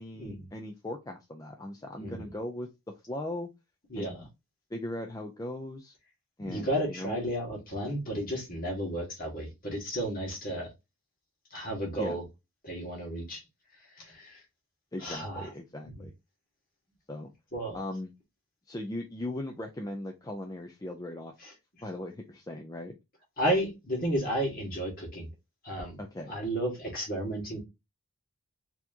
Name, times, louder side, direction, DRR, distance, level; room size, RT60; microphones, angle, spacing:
voice 1, 0.0-2.7 3.1-3.5 4.0-4.3 4.7-5.9 6.4-7.2 12.0-12.2 14.9-16.1 17.1-17.3 17.7-18.1 18.7-21.3 21.8-23.0 26.0-26.4, left 1 dB, 15° left, 0.4 m, -38 dB
voice 2, 6.4-10.7 11.5-12.2 12.6-13.4 14.0-14.4 15.0-15.5 16.0-16.1 17.5-17.8 21.4-21.5 23.4-25.3 25.6-26.0 26.3-27.6, right 1 dB, 40° left, 1.6 m, -32 dB
4.2 x 2.9 x 2.7 m
head